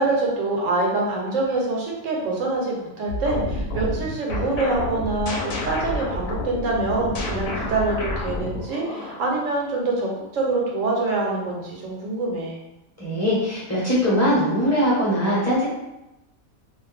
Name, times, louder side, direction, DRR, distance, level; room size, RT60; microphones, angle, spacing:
voice 1, 0.0-12.6, right 2 dB, 70° right, -2 dB, 1.0 m, -25 dB
sound 1, 3.1-9.3, left 1 dB, 85° left, 1.0 m, -29 dB
voice 2, 13.0-15.6, equal, 15° left, -9 dB, 0.8 m, -21 dB
2.5 x 2.1 x 3.2 m, 0.93 s
omnidirectional pair, 1.4 m